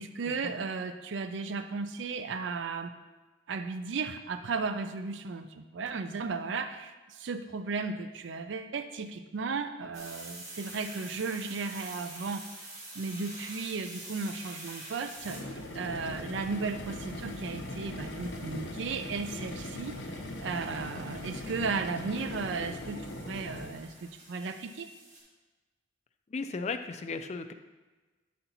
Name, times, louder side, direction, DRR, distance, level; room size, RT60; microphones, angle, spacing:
voice 1, 0.0-2.9 3.5-12.5 12.9-24.9, right 4 dB, 65° right, 9 dB, 0.4 m, -35 dB
sound 1, 9.9-25.2, right 2 dB, 35° right, 2.2 m, -48 dB
sound 2, 15.2-23.9, left 1 dB, 70° left, 0.8 m, -40 dB
voice 2, 26.3-27.5, left 4 dB, 35° left, 8 dB, 0.3 m, -36 dB
9.0 x 4.3 x 4.0 m, 1.2 s
head